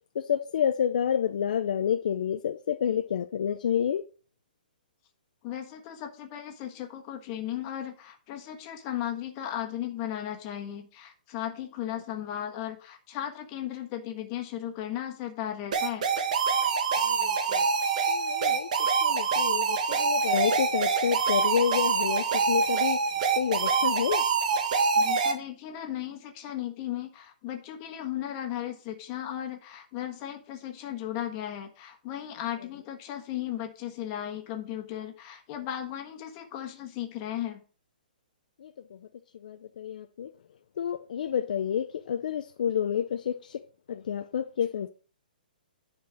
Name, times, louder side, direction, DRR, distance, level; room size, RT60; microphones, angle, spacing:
voice 1, 0.1-4.0 17.0-17.7 18.1-18.7 19.0-23.0 23.3-24.2 38.6-39.0 39.4-40.3 40.8-43.6 43.9-44.9, left 8 dB, 55° left, 0.6 m, -29 dB
voice 2, 5.4-16.1 24.9-37.6, left 11 dB, 25° left, 1.5 m, -36 dB
sound 1, 15.7-25.3, right 5 dB, 50° right, 1.7 m, -25 dB
10.5 x 4.4 x 6.2 m
hypercardioid pair, 170°, 5 cm